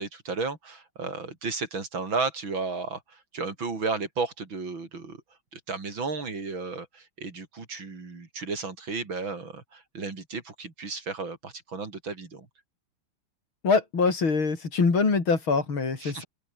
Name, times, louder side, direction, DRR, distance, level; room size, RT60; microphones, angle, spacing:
voice 1, 0.0-5.2 5.5-12.5 16.0-16.2, right 4 dB, 70° right, 4.8 m, -33 dB
voice 2, 13.6-16.2, left 4 dB, 80° left, 4.7 m, -24 dB
open air
omnidirectional pair, 2.2 m